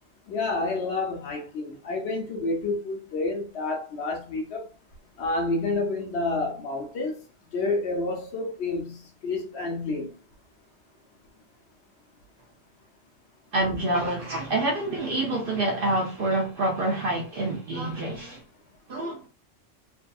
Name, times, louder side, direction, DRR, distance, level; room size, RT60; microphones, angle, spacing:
voice 1, 0.3-4.6 5.2-7.1 7.5-9.0 9.2-10.1, left 3 dB, 65° left, 0.9 m, -29 dB
voice 2, 13.5-18.4 18.9-19.3, right 1 dB, 60° right, 0.6 m, -27 dB
2.6 x 2.5 x 2.2 m
omnidirectional pair, 1.3 m